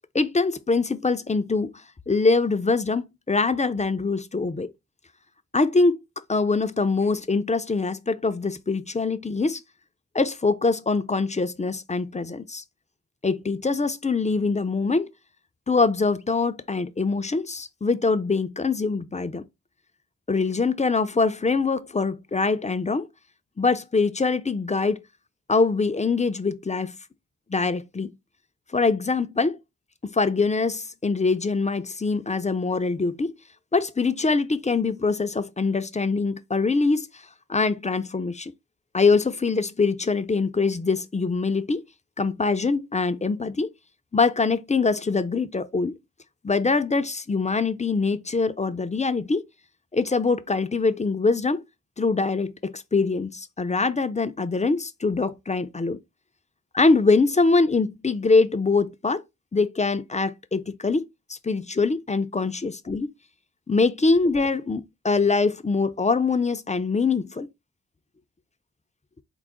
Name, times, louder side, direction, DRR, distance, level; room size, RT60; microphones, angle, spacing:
voice 1, 0.1-1.7 2.1-4.7 5.5-6.0 6.3-9.6 10.1-12.6 13.2-15.1 15.7-19.5 20.3-23.1 23.6-25.0 25.5-27.0 27.5-28.1 28.7-29.6 30.0-33.3 33.7-37.1 37.5-38.5 38.9-41.9 42.2-43.7 44.1-46.0 46.4-49.4 49.9-51.6 52.0-56.0 56.7-59.2 59.5-63.1 63.7-67.5, left 4 dB, 20° left, 0.4 m, -23 dB
4.7 x 2.0 x 3.6 m
cardioid pair, 60°, 33 cm